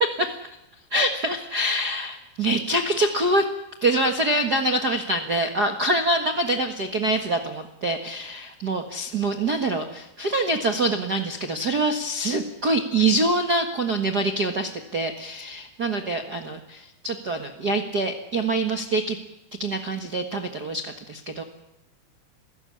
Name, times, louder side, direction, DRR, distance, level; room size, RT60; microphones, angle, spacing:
voice 1, 0.9-3.5 3.8-19.2 19.6-21.4, right 2 dB, 85° right, 6 dB, 0.8 m, -25 dB
28.5 x 16.0 x 9.9 m, 0.92 s
omnidirectional pair, 4.6 m